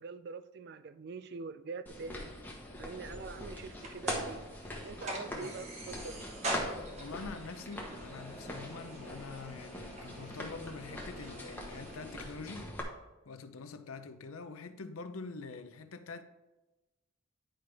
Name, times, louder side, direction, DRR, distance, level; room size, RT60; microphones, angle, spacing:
voice 1, 0.0-2.3 2.8-4.5 4.8-6.3, right 4 dB, 50° right, 0.4 m, -44 dB
sound 1, 1.9-12.8, left 1 dB, 10° left, 1.0 m, -43 dB
sound 2, 3.0-12.2, right 1 dB, 35° right, 1.3 m, -44 dB
voice 2, 7.0-12.8 13.3-16.2, left 4 dB, 85° left, 0.6 m, -45 dB
10.0 x 5.1 x 3.4 m
head